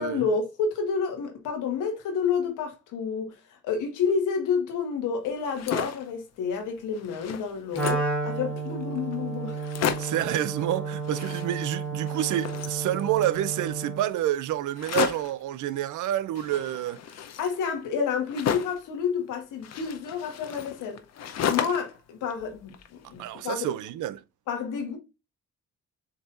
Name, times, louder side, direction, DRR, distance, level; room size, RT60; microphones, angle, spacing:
voice 1, 0.0-3.4 3.6-9.7 17.4-21.0 21.5-23.7 24.5-25.0, left 6 dB, 85° left, 1.6 m, -29 dB
sound 1, 5.4-6.1 6.6-6.7 6.9-8.2 8.8-8.9 9.1-9.2 9.5-10.3 11.0-11.8 12.1-13.4 14.7-15.4 16.4-18.9 19.6-22.0 22.3-23.2, left 8 dB, 60° left, 0.7 m, -33 dB
Wind instrument woodwind instrument, 7.7-14.1, right 4 dB, 5° left, 1.5 m, -32 dB
voice 2, 10.0-17.0 23.2-24.2, right 12 dB, 80° right, 0.6 m, -28 dB
7.3 x 2.7 x 2.5 m
cardioid pair, 90°, 30 cm